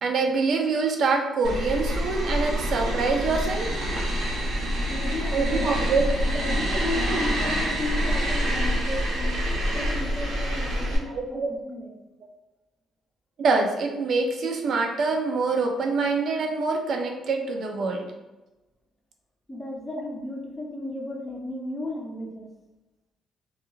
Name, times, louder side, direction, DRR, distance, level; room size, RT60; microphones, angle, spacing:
voice 1, 0.0-3.7 5.3-6.1 7.0-7.3 11.0-11.5 13.4-18.1, right 4 dB, 60° right, 3 dB, 0.4 m, -25 dB
sound 1, 1.4-11.0, equal, 90° right, 1.0 m, -26 dB
voice 2, 4.9-5.7 6.2-9.4 9.7-12.0 19.5-22.5, left 2 dB, 25° left, -1 dB, 0.6 m, -34 dB
2.3 x 2.2 x 3.0 m, 1.1 s
cardioid pair, 90°, 0 cm